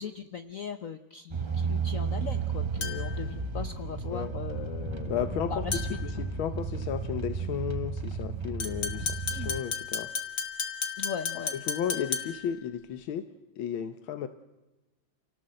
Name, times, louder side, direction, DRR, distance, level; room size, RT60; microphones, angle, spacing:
voice 1, 0.0-5.2 5.5-5.8 9.3-9.5 11.0-11.5, left 7 dB, 50° left, 9 dB, 1.2 m, -39 dB
sound 1, 1.3-9.6, right 4 dB, 25° right, 0.5 m, -33 dB
sound 2, 2.8-3.3 5.7-6.1 8.6-12.6, left 6 dB, 75° left, 2.7 m, -34 dB
voice 2, 5.1-5.6 6.0-10.1 11.5-13.3 13.6-14.3, left 9 dB, 90° left, 10 dB, 1.8 m, -34 dB
28.0 x 18.5 x 7.8 m, 1.1 s
omnidirectional pair, 2.1 m